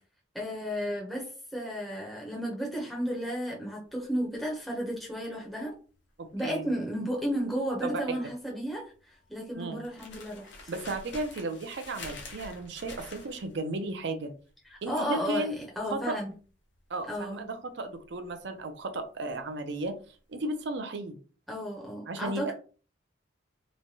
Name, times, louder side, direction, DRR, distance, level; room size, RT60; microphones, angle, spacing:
voice 1, 0.3-5.7 6.3-10.7 14.7-16.3 17.1-17.4 21.5-22.5, equal, ahead, -3 dB, 0.6 m, -33 dB
sound 1, 3.8-20.1 20.3-20.7, left 3 dB, 70° left, 0.7 m, -48 dB
voice 2, 6.2-6.7 7.8-8.2 9.6-9.8 10.7-14.3 14.8-15.6 15.9-16.2 16.9-19.9 20.3-21.2 22.1-22.5, right 2 dB, 65° right, 6 dB, 0.5 m, -34 dB
3.1 x 2.2 x 2.7 m, 0.38 s
head